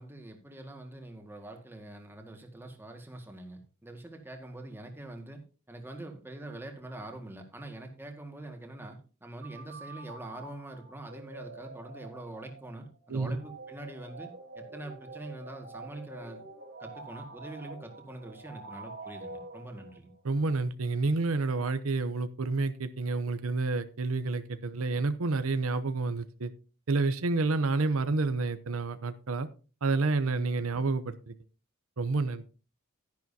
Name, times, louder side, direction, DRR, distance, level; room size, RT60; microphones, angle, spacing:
voice 1, 0.0-5.4 5.7-16.5 16.8-20.1, right 2 dB, 10° right, 3 dB, 1.8 m, -44 dB
sound 1, 9.4-20.2, right 3 dB, 55° right, 2.2 m, -47 dB
voice 2, 20.2-26.5 26.9-29.5 29.8-31.3 32.0-32.4, right 3 dB, 80° right, 12 dB, 0.7 m, -29 dB
12.0 x 10.5 x 2.8 m, 0.36 s
head